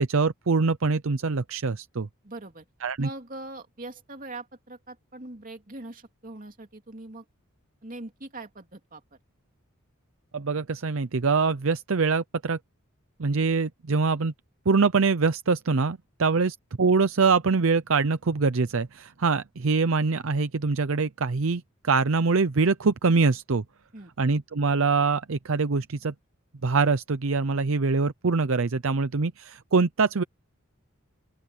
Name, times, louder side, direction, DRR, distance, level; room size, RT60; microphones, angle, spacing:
voice 1, 0.0-2.1 2.8-3.1 10.3-12.6 13.2-14.3 14.7-23.6 24.2-26.1 26.6-30.2, right 4 dB, 65° right, 0.7 m, -24 dB
voice 2, 2.2-2.6 3.0-7.2 7.8-9.0 16.3-16.4 23.9-24.1, right 2 dB, 40° right, 2.8 m, -41 dB
open air
head